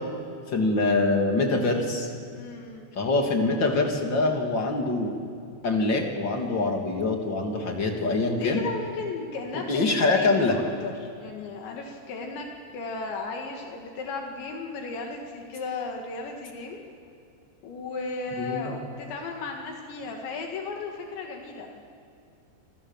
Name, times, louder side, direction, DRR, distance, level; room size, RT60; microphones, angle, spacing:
voice 1, 0.5-2.1 2.9-5.1 5.6-8.6 9.7-10.6 18.4-18.7, left 3 dB, 30° left, 2 dB, 2.7 m, -24 dB
voice 2, 2.3-2.9 8.4-12.5 12.7-16.8 17.6-21.8, left 3 dB, 75° left, 1 dB, 4.2 m, -35 dB
27.5 x 27.0 x 7.4 m, 2.4 s
omnidirectional pair, 5.3 m